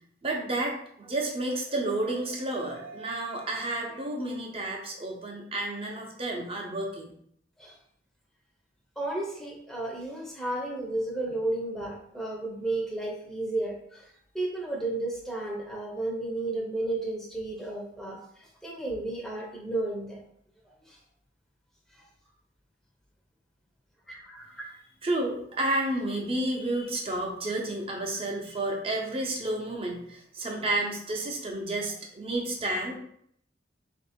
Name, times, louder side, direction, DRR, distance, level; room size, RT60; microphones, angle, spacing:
voice 1, 0.2-7.0 25.0-33.0, right 2 dB, 30° right, 0 dB, 0.7 m, -31 dB
voice 2, 9.0-20.2 20.9-21.0 21.9-22.0 24.1-24.6, right 2 dB, ahead, -3 dB, 0.7 m, -33 dB
3.5 x 2.6 x 4.2 m, 0.67 s
head